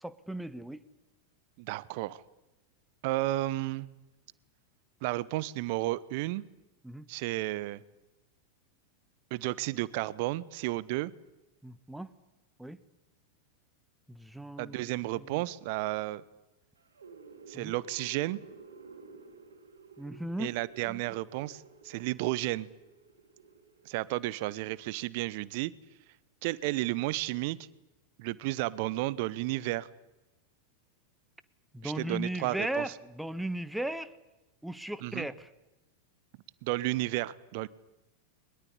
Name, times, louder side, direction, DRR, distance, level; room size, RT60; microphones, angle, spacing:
voice 1, 0.0-0.8 6.8-7.1 11.6-12.1 12.6-12.8 14.1-15.4 17.5-17.7 20.0-20.5 31.7-34.1 34.6-35.5, right 1 dB, 5° right, 14 dB, 1.4 m, -37 dB
voice 2, 1.6-2.2 3.0-3.9 5.0-6.4 7.1-7.8 9.3-11.1 14.6-16.2 17.5-18.4 20.4-22.7 23.8-25.7 26.4-27.6 28.2-29.9 31.8-32.8 35.0-35.3 36.6-37.7, right 18 dB, 50° right, 21 dB, 1.0 m, -32 dB
sound 1, 16.8-24.0, right 4 dB, 70° right, 3.9 m, -53 dB
22.5 x 21.0 x 9.9 m, 1.0 s
figure-of-eight pair, 90°, 0 cm